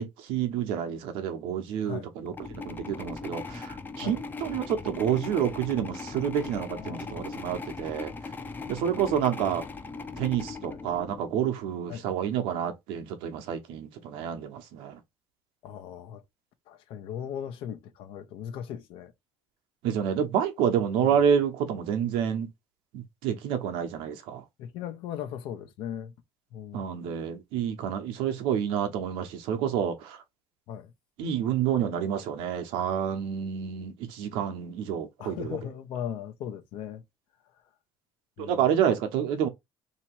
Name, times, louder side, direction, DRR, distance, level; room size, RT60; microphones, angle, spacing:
voice 1, 0.0-8.1 8.7-9.6 10.2-15.0 19.8-22.5 22.9-24.4 26.7-30.2 31.2-35.6 38.4-39.5, right 8 dB, 85° right, 0.9 m, -29 dB
sound 1, 2.2-11.6, left 4 dB, 20° left, 0.5 m, -39 dB
voice 2, 6.7-7.3 8.9-9.3 10.7-10.8 11.9-12.1 15.6-16.2 16.7-19.1 21.0-21.2 24.6-26.1 26.5-27.1 30.7-30.9 35.2-37.0 38.4-38.8, left 9 dB, 75° left, 0.8 m, -38 dB
2.9 x 2.9 x 4.4 m
cardioid pair, 115°, 9 cm